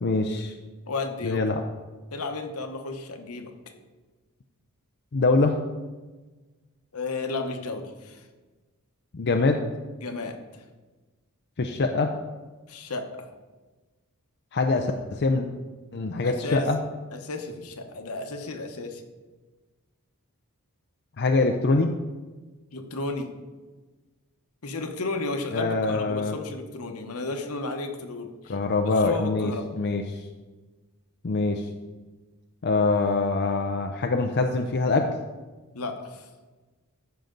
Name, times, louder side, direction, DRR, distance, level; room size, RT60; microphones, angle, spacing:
voice 1, 0.0-0.5 1.2-1.6 5.1-5.6 9.1-9.6 11.6-12.1 14.5-15.5 15.9-16.8 21.2-21.9 25.5-26.3 28.5-30.3 31.2-31.7 32.6-35.1, left 3 dB, 50° left, 4 dB, 0.6 m, -24 dB
voice 2, 0.9-1.5 2.1-3.5 6.9-8.2 10.0-10.4 12.7-13.3 16.2-16.7 17.1-19.0 22.7-23.3 24.6-28.6 28.9-29.6 35.7-36.2, left 3 dB, 80° left, 5 dB, 1.1 m, -33 dB
14.5 x 5.8 x 3.9 m, 1.3 s
head